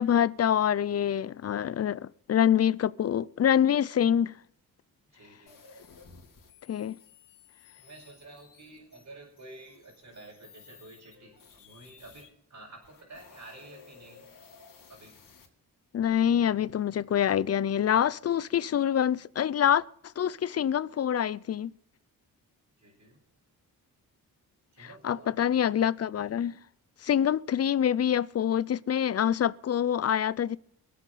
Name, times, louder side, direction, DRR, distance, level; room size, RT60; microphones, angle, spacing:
voice 1, 0.0-4.3 6.7-7.0 15.9-19.8 20.2-21.7 24.8-26.5 27.0-30.6, left 9 dB, 45° left, 0.5 m, -26 dB
voice 2, 5.1-5.6 7.7-14.3 14.9-15.2 22.8-23.2 24.7-25.3, right 2 dB, 50° right, 5.1 m, -50 dB
sound 1, 5.5-12.3 12.7-15.5, left 6 dB, 60° left, 3.1 m, -55 dB
23.5 x 8.3 x 4.1 m
cardioid pair, 85°, 37 cm